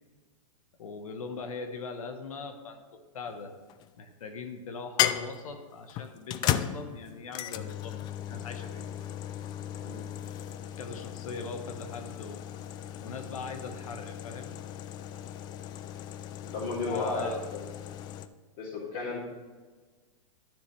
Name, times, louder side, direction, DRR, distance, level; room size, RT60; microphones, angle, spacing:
voice 1, 0.8-3.6 4.0-8.9 10.8-12.4 13.0-14.6 16.8-17.4, left 4 dB, 80° left, 6 dB, 1.2 m, -40 dB
sound 1, 3.3-3.9 5.0-18.3, left 11 dB, 25° left, 0.3 m, -36 dB
voice 2, 16.4-17.7 18.6-19.2, left 3 dB, 45° left, -8 dB, 2.7 m, -33 dB
11.5 x 6.5 x 3.2 m, 1.4 s
hypercardioid pair, 130°, 18 cm